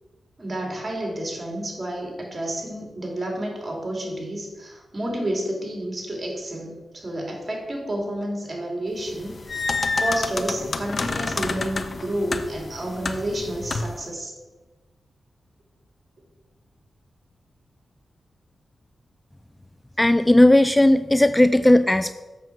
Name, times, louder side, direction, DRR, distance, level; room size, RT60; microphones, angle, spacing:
voice 1, 0.4-14.3, right 1 dB, 35° right, 1 dB, 2.7 m, -30 dB
sound 1, 9.1-14.0, left 3 dB, 55° left, 0.6 m, -29 dB
voice 2, 20.0-22.1, left 1 dB, 15° left, 13 dB, 0.3 m, -16 dB
7.8 x 6.5 x 4.6 m, 1.2 s
cardioid pair, 50°, 0 cm